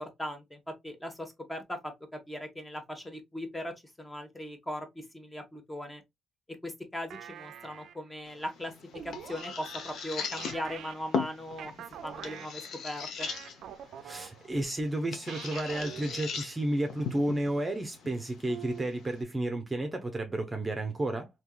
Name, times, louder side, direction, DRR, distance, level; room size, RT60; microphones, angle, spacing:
voice 1, 0.0-6.0 6.6-8.7 9.0-11.7 12.0-13.3, left 1 dB, 15° left, 1.0 m, -39 dB
sound 1, 7.1-8.1 8.9-14.9 15.3-16.6 18.5-19.4, right 9 dB, 75° right, 0.4 m, -46 dB
sound 2, 8.3-19.2, left 5 dB, 70° left, 0.7 m, -40 dB
voice 2, 14.0-21.3, right 1 dB, 20° right, 0.7 m, -32 dB
3.5 x 2.8 x 2.2 m
cardioid pair, 90°, 0 cm